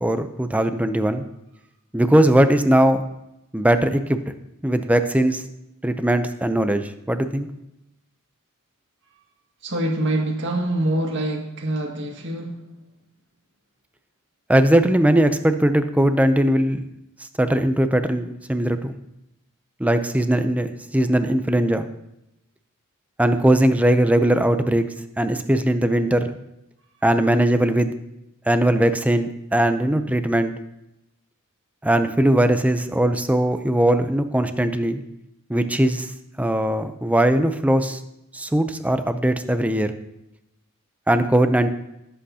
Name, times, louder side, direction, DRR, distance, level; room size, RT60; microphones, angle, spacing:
voice 1, 0.0-1.2 1.9-3.0 3.5-4.2 4.6-5.4 5.8-7.5 14.5-16.8 17.4-18.9 19.8-21.9 23.2-24.8 25.2-26.3 27.0-27.9 28.5-30.5 31.8-35.0 35.5-36.1 36.4-38.0 38.3-39.9 41.1-41.7, right 1 dB, 5° right, 9 dB, 0.5 m, -19 dB
voice 2, 9.6-12.6, right 1 dB, 55° right, 1 dB, 1.9 m, -25 dB
17.5 x 7.8 x 2.8 m, 0.88 s
head